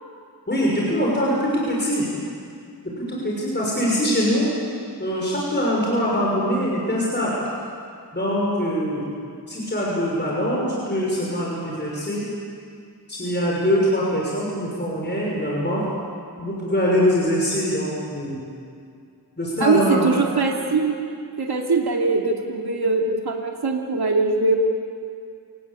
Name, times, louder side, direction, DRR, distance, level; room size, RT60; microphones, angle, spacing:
voice 1, 0.5-2.0 3.0-4.5 5.0-7.3 8.1-9.1 9.5-12.3 13.1-15.8 16.4-18.4 19.4-20.1, equal, 25° left, -5 dB, 6.2 m, -23 dB
voice 2, 19.6-21.0 21.4-24.6, right 3 dB, 70° right, 1 dB, 2.8 m, -21 dB
28.5 x 18.5 x 8.5 m, 2.3 s
wide cardioid pair, 80°, 39 cm